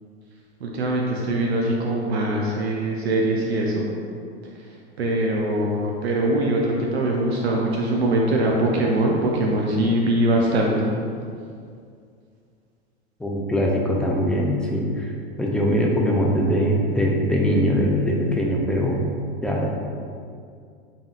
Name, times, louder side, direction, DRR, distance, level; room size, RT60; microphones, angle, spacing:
voice 1, 0.6-3.9 4.6-10.9, right 1 dB, 85° right, -1 dB, 0.6 m, -22 dB
voice 2, 13.2-15.1 15.4-19.0 19.4-19.7, equal, 5° left, -2 dB, 0.3 m, -22 dB
3.8 x 3.6 x 2.4 m, 2.3 s
hypercardioid pair, 95°, 32 cm